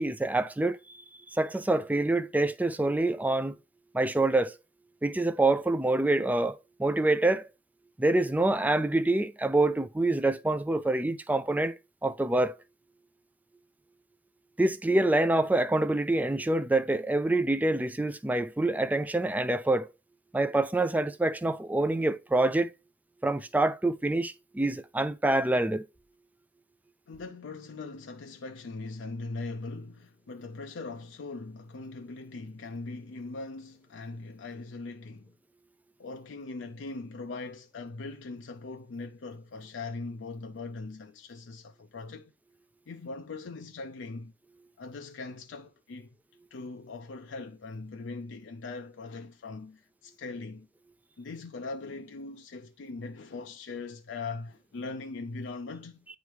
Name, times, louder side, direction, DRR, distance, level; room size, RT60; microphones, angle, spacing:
voice 1, 0.0-3.5 3.9-4.6 5.0-7.5 8.0-11.7 12.0-12.6 14.6-19.9 20.3-22.7 23.2-25.8, right 2 dB, 10° right, 0.3 m, -26 dB
voice 2, 27.1-35.4 36.0-42.3 42.9-44.3 44.8-46.2 46.5-50.7 51.2-56.1, left 3 dB, 70° left, 0.5 m, -40 dB
9.3 x 3.1 x 3.3 m
head